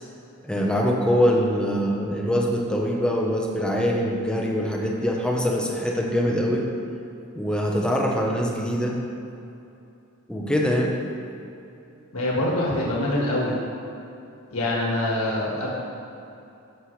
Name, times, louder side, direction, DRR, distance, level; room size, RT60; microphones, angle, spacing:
voice 1, 0.4-6.6 7.3-9.0 10.3-10.9, equal, 5° left, -1 dB, 0.9 m, -23 dB
voice 2, 12.1-13.6 14.5-15.7, left 1 dB, 75° left, -5 dB, 1.8 m, -24 dB
13.0 x 7.5 x 3.3 m, 2.8 s
head